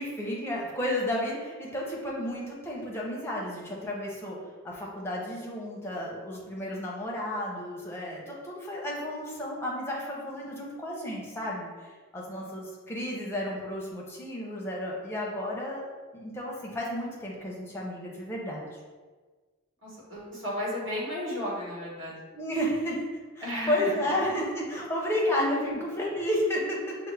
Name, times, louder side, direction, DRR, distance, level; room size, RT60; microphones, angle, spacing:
voice 1, 0.0-4.4 4.6-15.8 16.1-18.8 22.3-23.0 23.3-26.9, left 1 dB, 10° left, -3 dB, 0.6 m, -32 dB
voice 2, 19.8-22.2 23.4-24.2 25.4-25.8, left 1 dB, 60° right, -6 dB, 1.5 m, -34 dB
5.7 x 2.1 x 3.3 m, 1.4 s
head